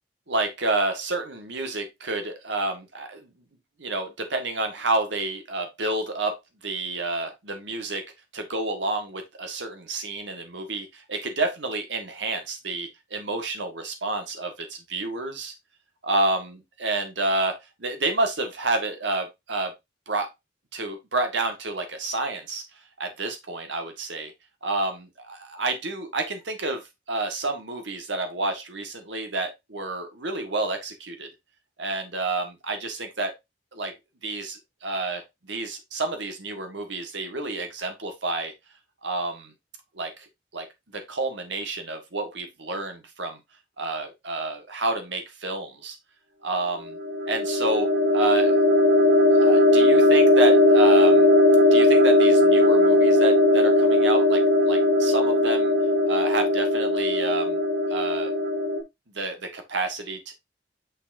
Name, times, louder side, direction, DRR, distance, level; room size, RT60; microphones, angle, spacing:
voice 1, 0.3-3.3 3.8-6.4 6.6-8.0 8.3-15.5 16.0-19.7 20.1-20.3 20.7-22.6 23.0-24.3 24.6-26.8 27.1-31.3 31.8-33.3 33.7-33.9 34.2-35.2 35.5-38.5 39.0-39.5 40.0-40.1 40.5-40.7 40.9-43.4 43.8-46.0 46.4-47.0 47.3-48.6 49.3-51.3 51.7-55.7 56.0-57.6 57.9-58.3 59.2-60.3, right 2 dB, 85° right, 1.6 m, -29 dB
sound 1, 46.9-58.8, left 1 dB, 50° right, 1.7 m, -18 dB
6.5 x 5.7 x 2.6 m
head